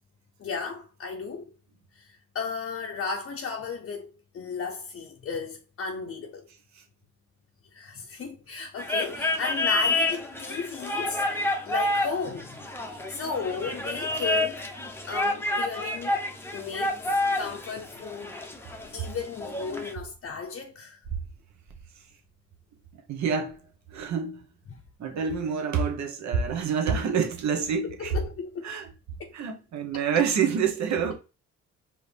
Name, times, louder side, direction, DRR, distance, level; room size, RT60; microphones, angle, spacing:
voice 1, 0.4-1.6 1.9-6.5 7.7-12.6 13.1-16.2 16.5-17.0 17.4-18.4 18.9-21.0 27.8-28.7 29.2-29.3, left 5 dB, 45° left, 0.7 m, -35 dB
sound 1, 8.8-19.9, left 2 dB, 10° left, 0.7 m, -29 dB
voice 2, 23.1-23.6 23.9-24.4 25.0-28.2 28.6-28.9 29.3-31.1, right 6 dB, 65° right, 1.1 m, -27 dB
4.9 x 2.8 x 3.3 m
cardioid pair, 90°, 30 cm